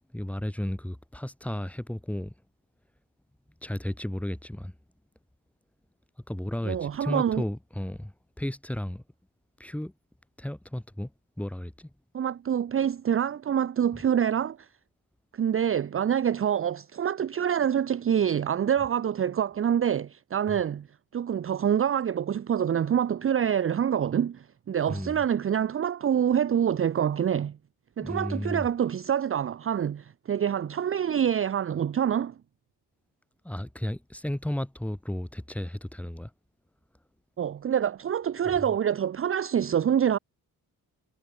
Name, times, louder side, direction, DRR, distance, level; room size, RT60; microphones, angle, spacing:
voice 1, 0.1-2.3 3.6-4.7 6.3-9.0 9.6-9.9 10.4-11.1 11.4-11.9 20.5-20.6 24.9-25.2 28.0-28.7 33.4-36.3, left 1 dB, 5° left, 4.1 m, -33 dB
voice 2, 6.6-7.4 12.1-14.7 15.3-20.9 21.1-27.6 28.0-32.3 37.4-40.2, right 9 dB, 35° right, 0.8 m, -26 dB
cardioid pair, 155°, 39 cm